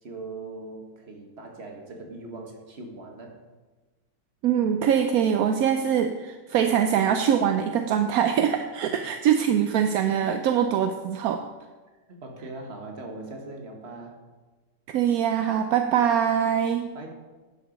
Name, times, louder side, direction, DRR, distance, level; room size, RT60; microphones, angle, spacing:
voice 1, 0.0-3.4 12.1-14.2 16.9-17.1, right 2 dB, 35° right, 2 dB, 1.6 m, -40 dB
voice 2, 4.4-11.4 14.9-16.9, right 8 dB, 70° right, 6 dB, 0.9 m, -23 dB
11.0 x 7.1 x 5.1 m, 1.3 s
omnidirectional pair, 2.0 m